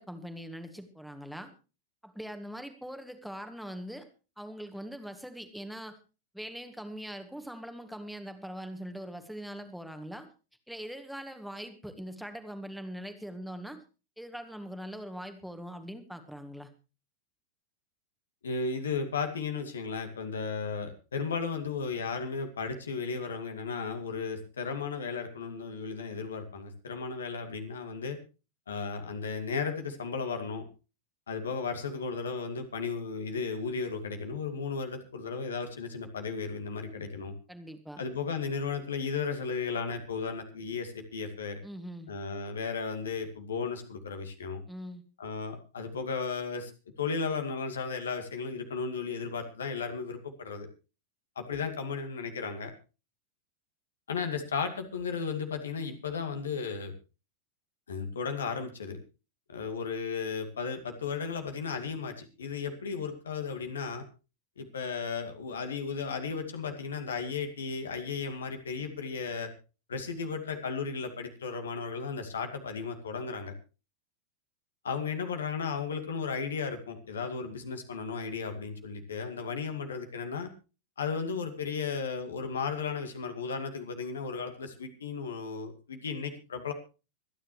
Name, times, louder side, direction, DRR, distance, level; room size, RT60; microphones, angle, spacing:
voice 1, 0.0-1.5 2.0-4.1 4.4-6.0 6.3-10.3 10.7-13.8 14.2-16.7 37.5-38.0 41.6-42.1 44.7-45.0, equal, ahead, 7 dB, 1.9 m, -42 dB
voice 2, 18.4-28.2 28.7-30.6 31.3-37.3 38.0-41.6 42.1-44.6 45.2-46.7 47.0-50.7 51.4-52.7 54.1-56.9 57.9-59.0 59.5-64.0 64.6-69.5 69.9-73.5 74.8-80.5 81.0-86.7, left 5 dB, 70° left, 6 dB, 2.2 m, -35 dB
25.0 x 10.0 x 3.1 m, 0.33 s
figure-of-eight pair, 90°, 0 cm